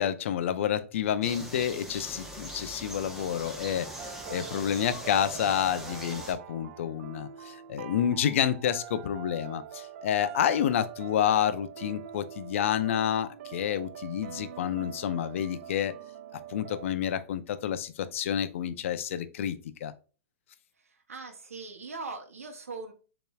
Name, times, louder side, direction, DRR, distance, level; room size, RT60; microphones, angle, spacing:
voice 1, 0.0-15.9 16.5-19.9, left 9 dB, 65° left, 0.6 m, -29 dB
sound 1, 1.2-6.3, equal, 5° right, 1.0 m, -41 dB
sound 2, 3.8-16.9, right 10 dB, 70° right, 0.4 m, -44 dB
voice 2, 21.1-22.9, right 3 dB, 85° right, 0.8 m, -40 dB
6.6 x 3.0 x 2.3 m
hypercardioid pair, 115°, 8 cm